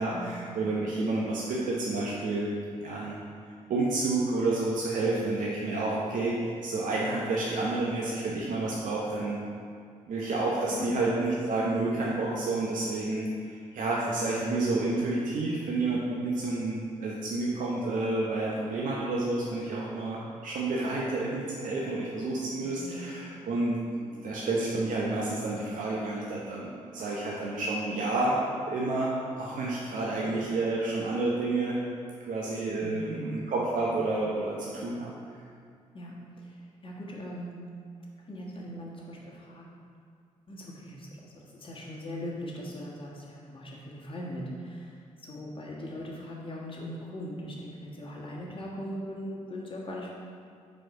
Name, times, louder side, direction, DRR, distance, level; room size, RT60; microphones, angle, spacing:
voice 1, 0.0-2.5 2.8-3.2 3.7-9.4 10.1-28.4 28.7-31.8 32.3-35.1, right 2 dB, 50° right, -4 dB, 0.8 m, -30 dB
voice 2, 22.6-23.5 30.1-30.2 32.8-33.8 35.9-37.6 38.3-39.6 40.5-50.1, equal, 30° left, -4 dB, 1.4 m, -40 dB
4.6 x 4.3 x 4.8 m, 2.2 s
figure-of-eight pair, 40°, 17 cm